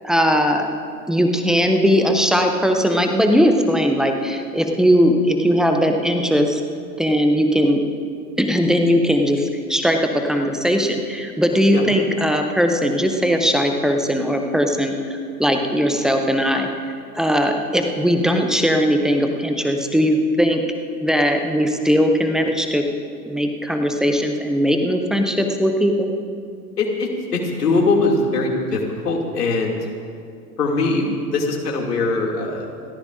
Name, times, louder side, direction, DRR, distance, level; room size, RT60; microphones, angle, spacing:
voice 1, 0.0-0.7 1.1-6.6 7.0-7.8 8.4-16.7 17.1-20.6 21.0-22.8 23.2-26.1, equal, ahead, 4 dB, 0.4 m, -19 dB
voice 2, 26.8-29.8 30.6-32.7, left 3 dB, 70° left, -1 dB, 2.7 m, -21 dB
28.5 x 14.0 x 2.6 m, 2.3 s
figure-of-eight pair, 95°, 49 cm